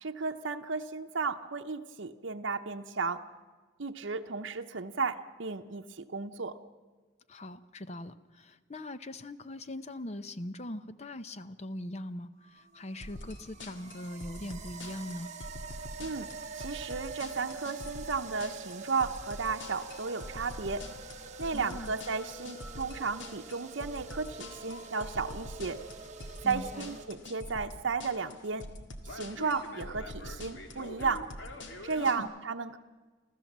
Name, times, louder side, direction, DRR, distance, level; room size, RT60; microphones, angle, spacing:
voice 1, 0.0-3.2 3.8-6.6 16.0-16.3 16.6-20.9 21.4-25.8 26.4-28.7 29.0-31.3 31.8-32.8, right 4 dB, 75° right, 4 dB, 0.8 m, -34 dB
voice 2, 7.3-15.3 21.5-21.9 26.4-27.0 32.0-32.3, left 1 dB, 35° left, 12 dB, 0.7 m, -41 dB
sound 1, 12.4-27.1, right 4 dB, 35° right, 1.1 m, -46 dB
sound 2, 13.0-32.2, left 1 dB, 75° left, 1.9 m, -45 dB
29.0 x 13.5 x 7.4 m, 1.3 s
head